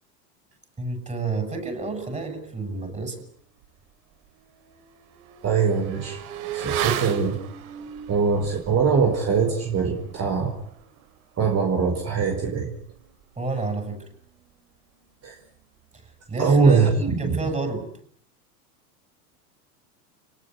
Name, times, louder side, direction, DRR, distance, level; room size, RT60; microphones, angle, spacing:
voice 1, 0.8-3.2 13.4-14.0 16.0-17.9, right 3 dB, 15° right, 7 dB, 7.7 m, -30 dB
Motorcycle / Accelerating revving vroom, 3.6-3.7 4.1-14.1 14.4-14.5, right 9 dB, 60° right, 4.3 m, -36 dB
voice 2, 5.4-6.2 6.5-7.4 8.1-10.5 11.4-12.7 15.2-15.4 16.4-17.4, right 5 dB, 30° right, 3 dB, 5.1 m, -22 dB
29.0 x 19.0 x 9.7 m, 0.63 s
hypercardioid pair, 105°, 47 cm